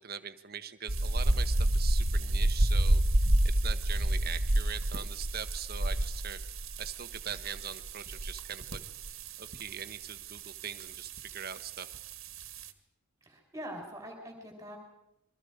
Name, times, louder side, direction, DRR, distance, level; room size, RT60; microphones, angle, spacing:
voice 1, 0.0-3.3 3.6-6.4 6.8-8.8 9.4-11.9, right 7 dB, 45° right, 10 dB, 1.1 m, -42 dB
sound 1, 0.9-12.7, right 1 dB, 65° right, 1.7 m, -30 dB
voice 2, 13.2-14.8, equal, 15° right, 2 dB, 4.4 m, -43 dB
29.0 x 23.0 x 5.0 m, 0.85 s
head